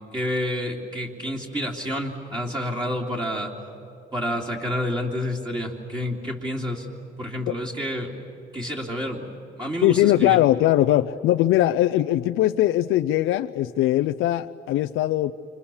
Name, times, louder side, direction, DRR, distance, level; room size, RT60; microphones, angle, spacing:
voice 1, 0.1-3.5 4.1-6.9 7.2-8.2 8.5-9.3 9.6-10.4, equal, 20° right, -1 dB, 3.0 m, -29 dB
voice 2, 9.8-15.3, left 14 dB, 90° left, 7 dB, 0.5 m, -20 dB
29.0 x 25.5 x 7.1 m, 2.9 s
cardioid pair, 90°, 20 cm